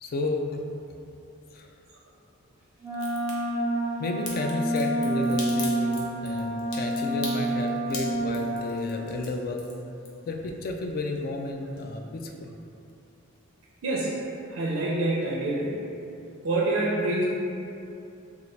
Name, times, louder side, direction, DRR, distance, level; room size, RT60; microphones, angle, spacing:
voice 1, 0.0-0.6 1.5-1.7 4.0-9.6 10.3-12.6, left 2 dB, 45° left, 3 dB, 0.3 m, -32 dB
Wind instrument woodwind instrument, 2.8-8.8, right 1 dB, 15° right, 0.5 m, -28 dB
Crack, 2.9-3.3 4.2-10.5 10.8-11.5 11.8-11.9, left 3 dB, 85° left, 0.7 m, -40 dB
voice 2, 13.8-15.8 16.4-17.2, right 2 dB, 85° right, -5 dB, 0.5 m, -27 dB
3.7 x 2.3 x 3.2 m, 2.8 s
head